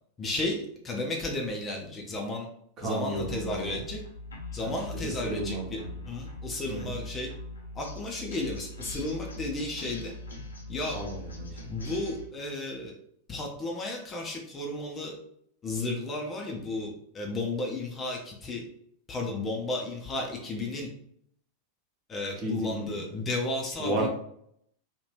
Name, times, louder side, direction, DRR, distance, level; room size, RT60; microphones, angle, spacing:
voice 1, 0.2-2.5 2.8-4.0 4.5-5.8 6.1-7.3 7.7-10.1 10.7-11.0 11.7-12.9 13.3-15.2 15.6-18.6 19.1-20.9 22.1-24.1, left 2 dB, 20° left, 0 dB, 0.6 m, -33 dB
voice 2, 2.8-3.9 4.6-6.0 6.7-7.0 10.9-11.6 22.4-23.0 23.8-24.1, right 1 dB, 35° right, -1 dB, 1.0 m, -33 dB
sound 1, 3.1-12.3, left 2 dB, 75° left, 0.6 m, -41 dB
2.8 x 2.4 x 3.3 m, 0.69 s
figure-of-eight pair, 90°, 0 cm